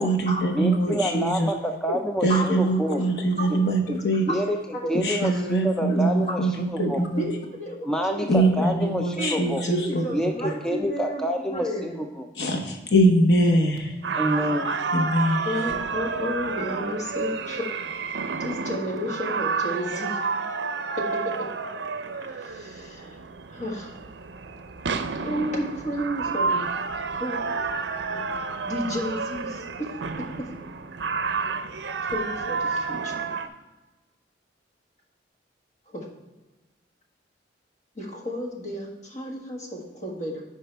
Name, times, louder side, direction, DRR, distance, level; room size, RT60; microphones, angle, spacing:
voice 1, 0.0-1.5 2.2-4.3 4.9-7.3 8.3-10.0 10.4-10.6 12.3-14.0 14.9-15.7, right 1 dB, 65° left, 3 dB, 0.9 m, -23 dB
voice 2, 0.6-2.5 2.8-3.0 4.3-4.6 4.9-6.4 6.7-7.0 7.8-9.6 10.1-11.9 12.2-12.3 14.2-14.7, equal, 5° left, 4 dB, 0.3 m, -27 dB
voice 3, 6.8-7.3 7.6-7.7 8.1-8.3 9.2-12.0 15.4-17.7 18.1-20.2 21.0-21.5 22.2-23.2 23.5-24.0 25.2-26.7 27.2-27.4 28.6-29.9 30.4-30.5 32.0-33.2 35.9-36.1 38.0-40.4, equal, 40° left, 0 dB, 1.5 m, -32 dB
sound 1, 14.0-33.5, right 4 dB, 75° right, 0.5 m, -30 dB
10.0 x 4.9 x 3.3 m, 1.1 s
head